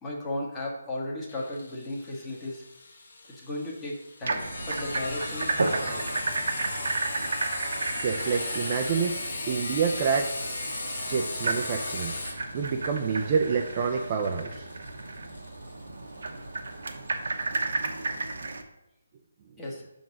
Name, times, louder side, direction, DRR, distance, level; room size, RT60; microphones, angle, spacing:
voice 1, 0.0-2.6 3.4-4.4 4.7-6.0 19.6-19.8, left 1 dB, 15° left, -3 dB, 1.2 m, -35 dB
Sawing, 1.3-16.7, left 2 dB, 65° left, 1.3 m, -37 dB
sound 1, 4.2-18.6, right 3 dB, 70° right, 0.9 m, -33 dB
voice 2, 8.0-9.2 9.5-10.3 10.9-12.1 12.5-14.7, right 6 dB, 30° right, 3 dB, 0.5 m, -27 dB
5.9 x 3.9 x 6.1 m, 0.90 s
hypercardioid pair, 165°, 0 cm